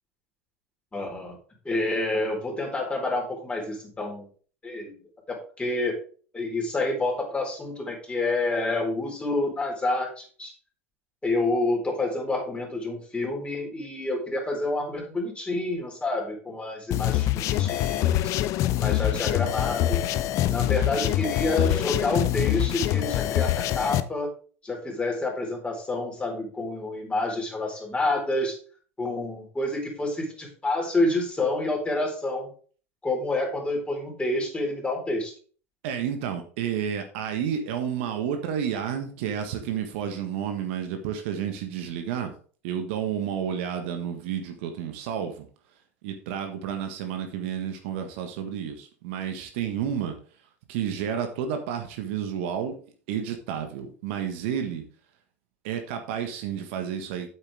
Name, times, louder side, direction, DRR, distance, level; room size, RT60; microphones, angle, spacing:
voice 1, 0.9-1.4 1.6-4.3 4.6-4.9 5.3-6.0 6.3-10.5 11.2-18.3 18.8-20.0 20.4-24.3 24.6-28.6 29.0-32.5 33.0-35.3, left 2 dB, 15° left, 0 dB, 4.1 m, -28 dB
sound 1, 16.9-24.0, left 13 dB, 45° left, 0.6 m, -25 dB
voice 2, 35.8-42.3 42.6-45.4 46.0-50.2 50.7-52.7 53.1-54.8 55.6-57.3, right 8 dB, 60° right, 6 dB, 1.4 m, -31 dB
8.9 x 7.9 x 3.5 m, 0.42 s
figure-of-eight pair, 75°, 7 cm